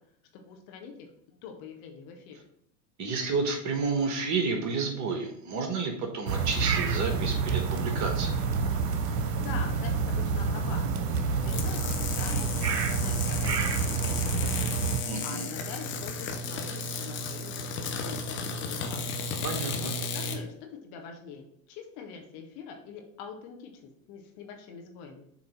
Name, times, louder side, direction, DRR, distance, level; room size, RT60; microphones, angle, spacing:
voice 1, 0.3-2.4 9.2-19.2 19.8-25.2, left 6 dB, 45° left, 3 dB, 1.3 m, -44 dB
voice 2, 3.0-8.4 15.0-15.5 19.4-19.9, right 4 dB, 35° right, 4 dB, 1.4 m, -31 dB
sound 1, 6.3-15.0, right 5 dB, 75° right, 0.9 m, -28 dB
sound 2, 11.4-20.4, left 3 dB, 25° left, 0.7 m, -34 dB
7.1 x 3.3 x 4.3 m, 0.71 s
figure-of-eight pair, 90°, 50 cm